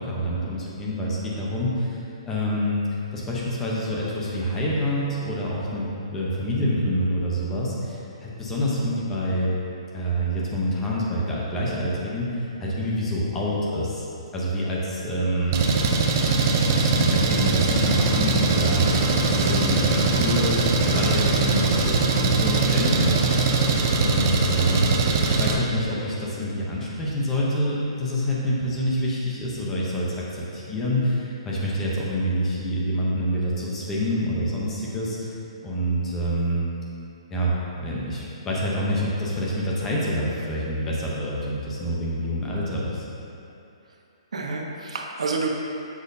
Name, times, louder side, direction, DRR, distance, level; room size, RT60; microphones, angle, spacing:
voice 1, 0.0-2.8 3.1-5.8 6.1-9.6 9.9-14.1 14.3-15.6 16.7-20.6 20.9-23.4 24.0-24.9 25.2-35.3 35.6-36.6 37.3-43.0, equal, 10° left, -6 dB, 0.7 m, -26 dB
Engine, 15.5-25.5, right 3 dB, 25° right, 0.4 m, -21 dB
voice 2, 44.3-45.5, right 4 dB, 90° right, 0 dB, 1.0 m, -29 dB
7.9 x 7.2 x 2.7 m, 2.8 s
hypercardioid pair, 180°, 3 cm